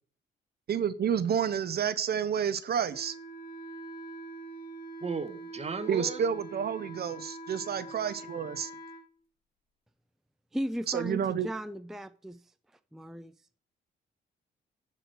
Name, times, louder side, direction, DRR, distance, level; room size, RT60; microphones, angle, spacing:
voice 1, 0.7-3.1 5.9-8.7 10.9-11.5, right 8 dB, 55° right, 0.9 m, -30 dB
Wind instrument woodwind instrument, 2.9-9.1, right 2 dB, 50° left, 3.7 m, -44 dB
voice 2, 5.0-6.3, right 5 dB, 30° right, 1.3 m, -35 dB
voice 3, 10.5-12.4 12.9-13.3, equal, ahead, 0.5 m, -36 dB
11.0 x 5.0 x 6.1 m
cardioid pair, 90°, 20 cm